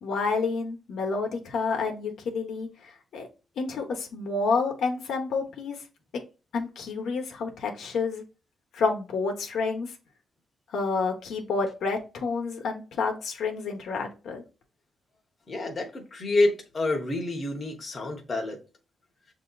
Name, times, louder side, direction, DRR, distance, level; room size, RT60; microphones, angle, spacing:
voice 1, 0.0-3.3 3.6-5.8 6.5-8.2 8.7-9.9 10.7-14.4, left 4 dB, 85° left, 1.0 m, -29 dB
voice 2, 15.5-18.6, left 2 dB, 30° left, 0.9 m, -28 dB
6.9 x 2.8 x 2.3 m
wide cardioid pair, 150°, 0 cm